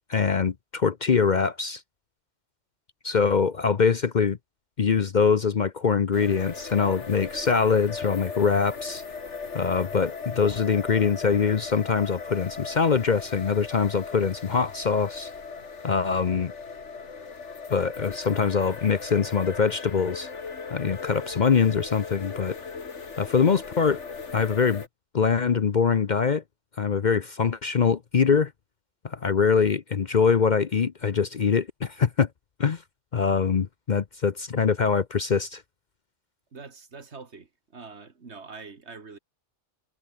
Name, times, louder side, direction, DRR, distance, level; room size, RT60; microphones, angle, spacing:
voice 1, 0.1-1.8 3.0-4.4 4.8-9.0 9.5-15.3 15.8-16.5 17.7-20.3 20.7-22.5 23.2-24.0 24.3-24.8 25.1-26.4 26.8-28.5 29.0-32.3 32.6-32.8 33.1-35.6, left 5 dB, 45° left, 0.8 m, -23 dB
sound 1, 6.1-24.9, left 5 dB, 75° left, 2.2 m, -38 dB
voice 2, 36.5-39.2, right 4 dB, 65° right, 2.3 m, -44 dB
omnidirectional pair, 1.2 m